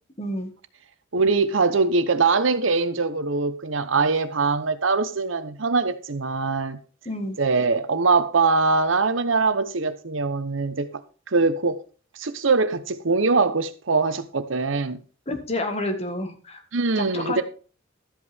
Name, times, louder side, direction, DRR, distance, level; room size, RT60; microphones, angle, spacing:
voice 1, 0.2-0.5 7.0-7.4 15.3-16.6 16.9-17.4, left 1 dB, 30° left, 1.7 m, -29 dB
voice 2, 1.1-6.8 7.4-10.9 11.3-11.8 12.2-15.0 16.7-17.4, right 4 dB, 70° right, 0.9 m, -22 dB
13.0 x 8.3 x 3.5 m
head